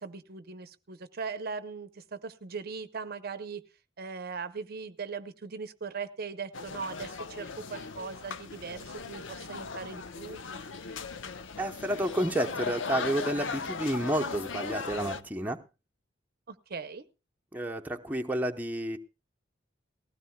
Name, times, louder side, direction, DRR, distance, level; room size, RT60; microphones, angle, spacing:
voice 1, 0.0-3.6 4.0-10.4 16.5-17.0, right 5 dB, 55° right, 12 dB, 0.7 m, -39 dB
sound 1, 6.5-15.2, left 4 dB, 80° left, 0.7 m, -38 dB
voice 2, 11.6-15.6 17.5-19.0, right 1 dB, 10° right, 2 dB, 0.8 m, -30 dB
19.0 x 16.0 x 2.2 m, 0.29 s
head